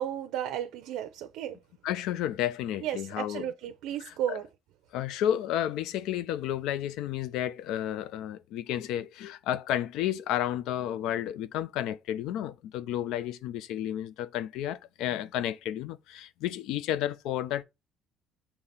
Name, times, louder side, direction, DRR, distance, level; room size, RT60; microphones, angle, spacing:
voice 1, 0.0-1.6 2.8-4.4, right 10 dB, 80° right, 0.7 m, -33 dB
voice 2, 1.8-3.5 4.0-4.4 4.9-17.6, left 11 dB, 75° left, 0.5 m, -32 dB
6.7 x 2.9 x 5.5 m
cardioid pair, 155°, 0 cm